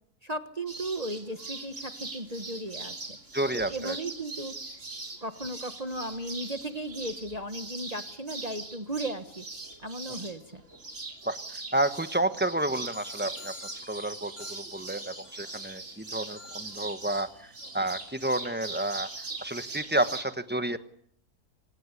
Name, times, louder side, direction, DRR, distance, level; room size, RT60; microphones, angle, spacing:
voice 1, 0.2-3.2 3.7-4.5 5.2-9.4 9.8-10.6, right 1 dB, 25° right, 8 dB, 1.4 m, -36 dB
sound 1, 0.7-20.2, right 3 dB, 50° right, 3.4 m, -41 dB
voice 2, 3.3-4.0 10.1-10.2 11.3-13.6 13.9-19.1 19.4-20.8, right 1 dB, 5° right, 11 dB, 1.1 m, -30 dB
sound 2, 12.8-19.7, left 2 dB, 65° left, 4.6 m, -51 dB
27.0 x 18.5 x 9.8 m, 0.68 s
omnidirectional pair, 1.6 m